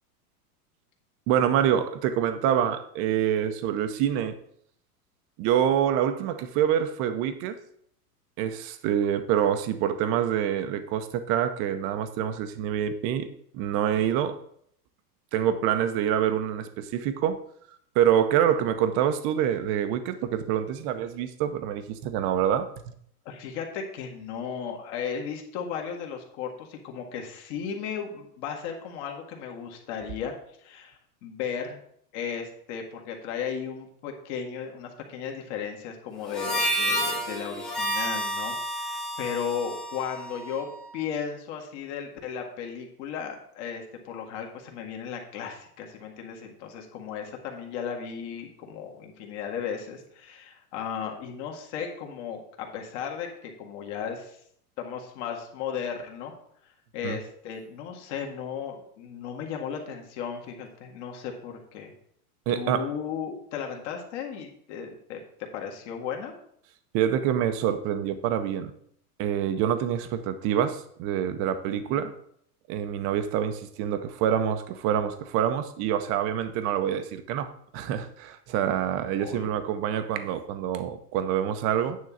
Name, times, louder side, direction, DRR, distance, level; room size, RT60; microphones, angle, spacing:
voice 1, 1.3-4.4 5.4-7.6 8.4-13.3 13.5-14.4 15.3-17.4 17.9-22.7 57.0-57.2 62.5-62.9 66.9-68.7 69.2-72.1 72.7-82.0, right 9 dB, 30° right, 10 dB, 0.7 m, -26 dB
voice 2, 23.3-30.3 30.6-31.8 32.1-54.4 54.8-56.3 56.9-61.9 62.5-66.3 71.6-72.0 79.2-79.5, left 7 dB, 50° left, 2 dB, 1.9 m, -35 dB
Harmonica, 36.3-40.9, equal, ahead, 0.3 m, -30 dB
9.4 x 3.7 x 7.1 m, 0.66 s
supercardioid pair, 155°, 46 cm